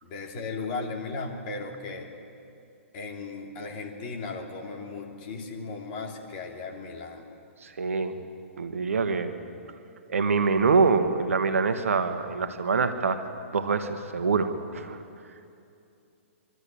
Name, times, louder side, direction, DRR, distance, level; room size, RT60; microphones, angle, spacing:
voice 1, 0.0-2.1 2.9-7.3, left 3 dB, 40° left, 1 dB, 3.1 m, -36 dB
voice 2, 7.6-8.2 8.6-9.3 10.1-13.2 13.5-15.0, right 4 dB, 80° right, 8 dB, 1.3 m, -25 dB
24.5 x 12.5 x 8.5 m, 2.6 s
hypercardioid pair, 130°, 7 cm